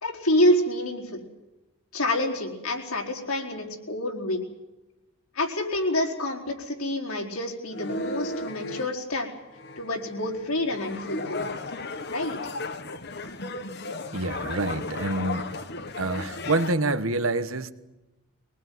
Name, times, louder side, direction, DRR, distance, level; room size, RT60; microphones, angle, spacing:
voice 1, 0.0-1.2 1.9-4.4 5.3-9.3 9.8-11.6 12.1-12.4, left 1 dB, 85° left, 4.6 m, -27 dB
sound 1, 7.7-8.9 9.5-16.7, left 2 dB, 50° left, 1.2 m, -35 dB
voice 2, 14.1-15.5 16.0-17.7, right 2 dB, 70° right, 1.3 m, -27 dB
23.5 x 20.0 x 9.5 m
head